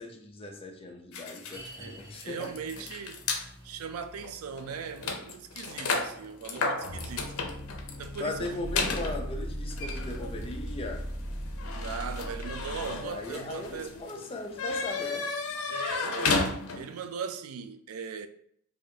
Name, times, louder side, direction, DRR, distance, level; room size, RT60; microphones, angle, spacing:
voice 1, 0.0-2.8 5.8-6.0 8.2-11.7 12.9-15.3 16.0-16.4, left 2 dB, 25° left, 0.5 m, -39 dB
sound 1, 1.1-3.4 4.2-4.3 4.6-17.0, left 4 dB, 85° left, 0.6 m, -34 dB
sound 2, 1.5-12.8 13.1-13.2 13.8-13.9, right 1 dB, 65° right, 1.6 m, -54 dB
voice 2, 1.8-3.2 3.6-7.3 8.0-8.5 11.7-14.0 15.7-18.3, right 6 dB, 90° right, 0.4 m, -39 dB
sound 3, 6.8-14.0, equal, 35° right, 1.1 m, -38 dB
4.8 x 2.5 x 2.8 m
head